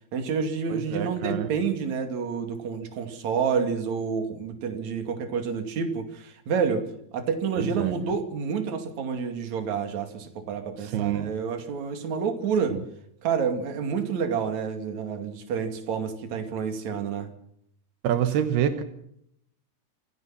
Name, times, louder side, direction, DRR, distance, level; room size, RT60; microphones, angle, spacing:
voice 1, 0.1-6.9 7.1-12.8 13.2-17.3, right 6 dB, 50° right, 6 dB, 3.5 m, -29 dB
voice 2, 0.7-1.5 7.6-7.9 10.8-11.4 12.7-12.8 18.0-18.8, right 10 dB, 80° right, 10 dB, 3.2 m, -27 dB
26.5 x 16.5 x 5.9 m, 0.73 s
omnidirectional pair, 4.5 m